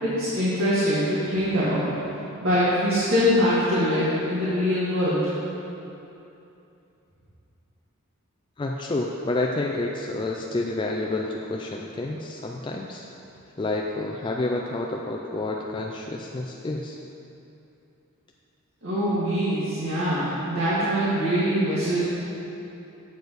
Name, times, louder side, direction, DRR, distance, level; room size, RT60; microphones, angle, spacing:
voice 1, 0.0-1.9 2.4-5.3 18.8-22.0, equal, 65° right, -11 dB, 1.8 m, -23 dB
voice 2, 8.6-13.0 13.6-17.0, left 2 dB, 20° left, 0 dB, 0.3 m, -29 dB
8.3 x 6.6 x 4.0 m, 2.8 s
head